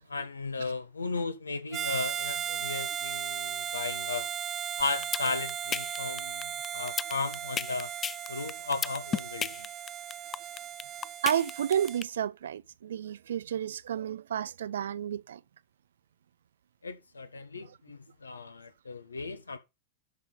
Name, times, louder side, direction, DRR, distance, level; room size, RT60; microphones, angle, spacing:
voice 1, 0.0-4.3 4.8-7.9 8.3-9.7 16.8-19.6, left 4 dB, 85° left, 1.6 m, -35 dB
Harmonica, 1.7-12.0, right 9 dB, 30° right, 1.2 m, -36 dB
sound 1, 4.8-12.0, left 7 dB, 25° left, 0.5 m, -32 dB
voice 2, 11.2-15.4 17.6-17.8, right 9 dB, 70° right, 0.5 m, -31 dB
12.5 x 5.5 x 4.2 m
figure-of-eight pair, 95°, 0 cm